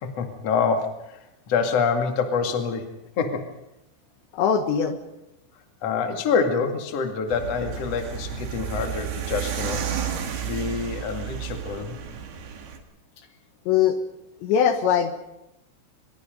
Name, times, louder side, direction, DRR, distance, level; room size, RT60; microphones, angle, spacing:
voice 1, 0.0-3.5 5.8-9.9 10.4-12.0, left 5 dB, 45° left, 4 dB, 2.3 m, -26 dB
voice 2, 4.3-5.0 13.7-14.0 14.4-15.2, left 8 dB, 70° left, 7 dB, 3.3 m, -21 dB
sound 1, 7.3-12.8, right 8 dB, 55° right, 3.8 m, -32 dB
25.0 x 22.0 x 5.3 m, 0.88 s
omnidirectional pair, 5.9 m